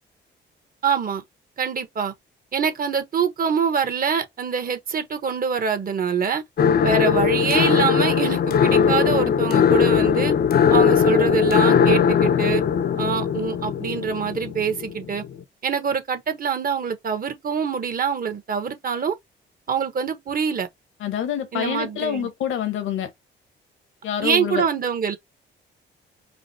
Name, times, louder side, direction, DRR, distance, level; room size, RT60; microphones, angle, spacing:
voice 1, 0.8-1.2 1.6-2.1 2.5-6.4 6.8-10.3 10.7-12.6 13.0-15.2 15.6-19.1 19.7-20.7 21.5-22.3 24.2-25.2, right 6 dB, 45° right, 1.3 m, -24 dB
sound 1, 6.6-15.4, left 7 dB, 50° left, 0.6 m, -19 dB
voice 2, 21.0-23.1 24.0-24.7, left 9 dB, 85° left, 1.5 m, -26 dB
5.0 x 2.2 x 4.3 m
cardioid pair, 90°, 20 cm